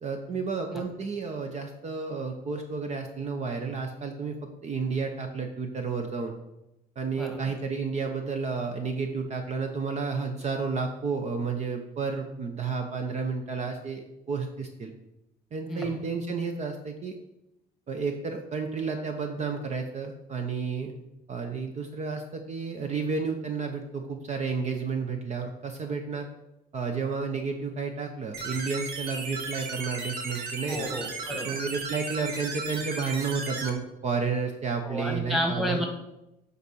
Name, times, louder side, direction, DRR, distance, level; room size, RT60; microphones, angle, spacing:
voice 1, 0.0-4.4 4.6-6.3 7.0-14.9 15.5-17.1 17.9-20.9 21.3-26.3 26.7-30.9 31.4-35.8, right 5 dB, 40° right, 4 dB, 0.9 m, -31 dB
sound 1, 28.3-33.7, right 4 dB, 70° right, 1.3 m, -35 dB
voice 2, 30.7-31.5 34.8-35.9, equal, ahead, 2 dB, 1.8 m, -30 dB
8.2 x 4.1 x 6.3 m, 0.90 s
cardioid pair, 110°, 17 cm